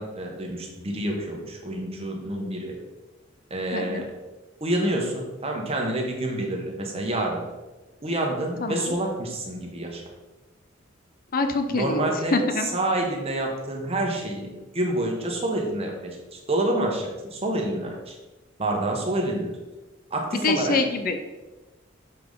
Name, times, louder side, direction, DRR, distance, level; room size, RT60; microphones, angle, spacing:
voice 1, 0.0-2.8 3.5-4.1 4.6-7.4 8.0-10.0 11.7-12.4 12.7-18.2 18.6-19.5 20.1-20.7, right 1 dB, 30° right, 0 dB, 1.3 m, -28 dB
voice 2, 3.7-4.0 8.6-9.0 11.3-12.7 20.3-21.2, left 3 dB, 45° left, 6 dB, 0.6 m, -25 dB
6.9 x 5.2 x 4.0 m, 1.1 s
head